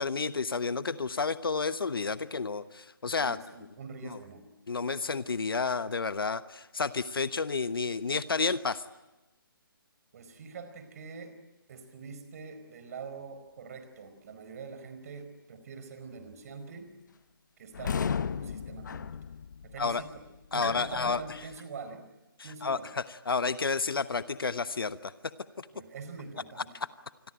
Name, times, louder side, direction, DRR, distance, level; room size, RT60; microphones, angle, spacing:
voice 1, 0.0-3.4 4.0-4.2 4.7-8.8 19.8-20.0 20.5-21.2 22.6-25.1 25.6-25.7, left 4 dB, 75° left, 13 dB, 1.1 m, -30 dB
voice 2, 3.1-4.4 10.1-11.4 11.7-16.9 17.6-19.1 19.6-20.2 20.5-22.0 22.4-22.9 25.7-26.7, right 5 dB, 40° right, 10 dB, 4.5 m, -44 dB
sound 1, 17.7-21.6, left 7 dB, 55° left, 0.9 m, -35 dB
27.5 x 22.0 x 9.0 m, 1.0 s
figure-of-eight pair, 150°, 12 cm